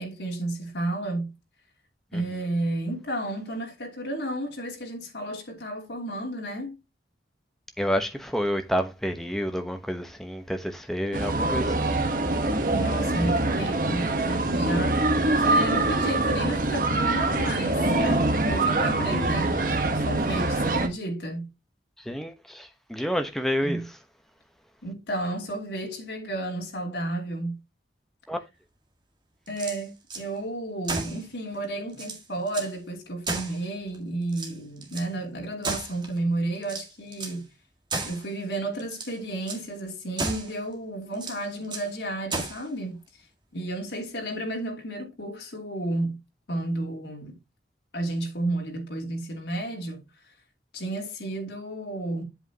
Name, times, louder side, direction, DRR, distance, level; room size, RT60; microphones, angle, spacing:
voice 1, 0.0-1.4 2.1-6.8 12.7-15.0 15.4-21.5 23.6-23.9 24.8-27.6 29.5-37.5 38.0-43.0 43.5-46.2 46.5-47.4 47.9-50.0 50.7-52.2, right 1 dB, 80° left, 2.8 m, -32 dB
voice 2, 7.8-11.8 19.0-19.5 22.0-23.8 28.3-28.4, equal, ahead, 1.0 m, -29 dB
sound 1, 11.1-20.9, right 2 dB, 50° right, 1.2 m, -24 dB
sound 2, 29.5-30.3 30.8-31.2 31.6-31.7 31.9-32.7 33.2-34.0 34.3-35.1 35.6-36.2 36.6-37.4 37.9-38.3 38.8-39.2 39.5-39.7 40.2-40.6 41.1-41.9 42.3-42.7, right 3 dB, 25° right, 1.7 m, -34 dB
8.0 x 7.5 x 2.8 m
head